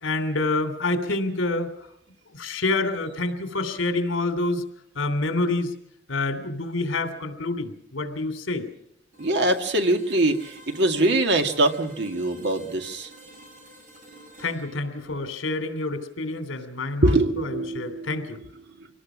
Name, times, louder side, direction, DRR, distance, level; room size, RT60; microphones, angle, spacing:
voice 1, 0.0-1.7 2.3-4.6 4.9-5.7 6.1-8.7 14.4-18.4, left 2 dB, 80° left, 8 dB, 3.0 m, -27 dB
sound 1, 9.1-17.0, right 1 dB, 45° right, 6.6 m, -50 dB
voice 2, 9.2-13.1 17.0-18.2, right 2 dB, 60° right, 5 dB, 1.9 m, -23 dB
24.0 x 18.5 x 6.2 m, 0.77 s
head